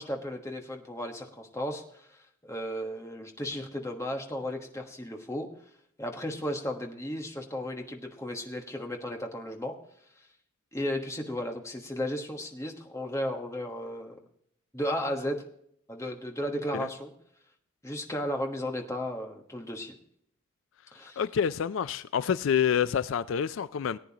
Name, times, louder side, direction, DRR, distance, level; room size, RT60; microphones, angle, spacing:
voice 1, 0.0-2.1 2.4-5.5 6.0-9.7 10.7-14.2 14.7-15.4 15.9-17.1 17.8-20.0 20.9-21.2, equal, 15° left, 1.2 m, -34 dB
voice 2, 21.2-24.0, left 8 dB, 70° left, 0.4 m, -27 dB
18.5 x 9.3 x 2.9 m
head